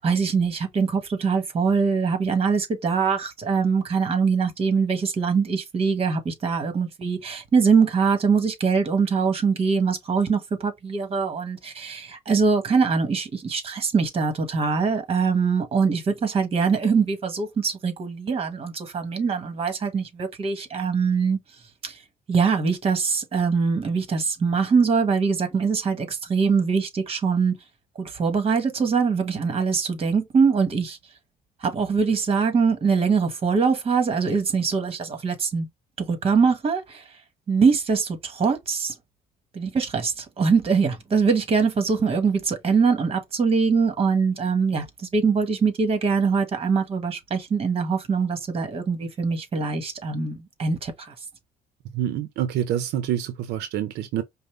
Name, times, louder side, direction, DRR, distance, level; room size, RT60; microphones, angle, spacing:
voice 1, 0.0-21.4 21.8-22.0 22.3-27.5 28.0-31.0 31.6-35.7 36.1-37.0 37.5-38.9 39.5-44.8 45.1-51.1, right 5 dB, 35° right, 1.3 m, -23 dB
voice 2, 51.9-54.2, right 11 dB, 80° right, 0.6 m, -27 dB
5.2 x 2.1 x 3.1 m
cardioid pair, 110°, 17 cm